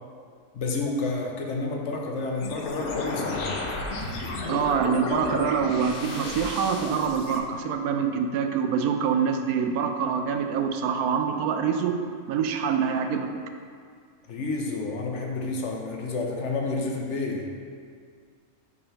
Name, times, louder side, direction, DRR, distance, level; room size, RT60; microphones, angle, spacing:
voice 1, 0.5-3.6 14.3-17.5, left 3 dB, 60° left, 0 dB, 0.9 m, -30 dB
sound 1, 2.4-7.4, left 3 dB, 85° left, 1.1 m, -33 dB
voice 2, 4.5-12.0 12.3-13.3, right 6 dB, 85° right, 6 dB, 1.1 m, -25 dB
5.5 x 4.0 x 5.6 m, 2.1 s
omnidirectional pair, 1.5 m